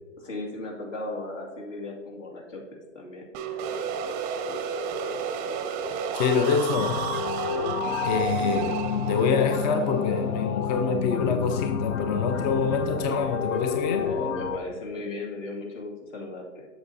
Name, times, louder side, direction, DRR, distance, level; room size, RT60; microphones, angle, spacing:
voice 1, 0.2-3.3 14.0-16.7, left 2 dB, 70° left, 2.3 m, -36 dB
sound 1, 3.3-11.1, right 6 dB, 20° right, 0.5 m, -32 dB
voice 2, 6.1-7.0 8.0-14.1, left 5 dB, 35° left, 0.5 m, -26 dB
sound 2, 6.7-14.6, left 6 dB, 90° left, 0.7 m, -30 dB
7.8 x 7.2 x 2.7 m
hypercardioid pair, 115°, 39 cm